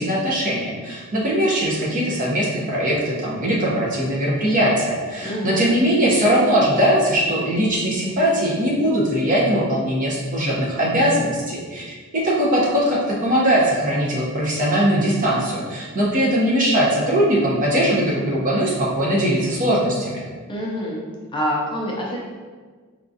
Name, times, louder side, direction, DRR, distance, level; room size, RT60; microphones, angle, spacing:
voice 1, 0.0-20.2, equal, 35° right, -4 dB, 0.8 m, -20 dB
voice 2, 5.2-5.8 20.5-21.1 21.3-22.2, equal, 20° left, -4 dB, 0.5 m, -26 dB
4.5 x 2.4 x 2.6 m, 1.5 s
head